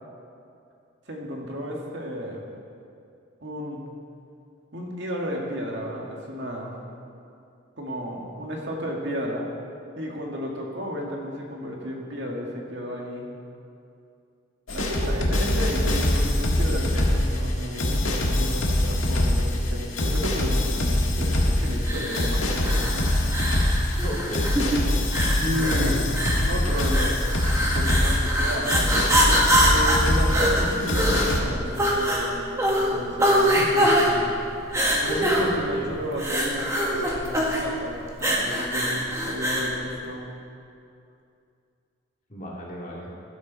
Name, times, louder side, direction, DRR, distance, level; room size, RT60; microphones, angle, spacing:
voice 1, 1.1-2.4 3.4-3.8 4.7-6.7 7.8-9.5 10.0-13.3 14.7-23.1 25.4-26.2 26.5-27.2 27.7-28.9 29.6-33.4 35.0-40.2, equal, 55° right, -1 dB, 2.0 m, -32 dB
sound 1, 14.7-31.4, left 1 dB, 75° left, 1.8 m, -24 dB
sound 2, 21.8-39.7, equal, 15° right, 1.6 m, -24 dB
voice 2, 24.0-24.5 33.5-34.3 35.1-36.0 42.3-43.1, equal, 40° left, -4 dB, 2.3 m, -34 dB
16.5 x 12.5 x 4.1 m, 2.5 s
head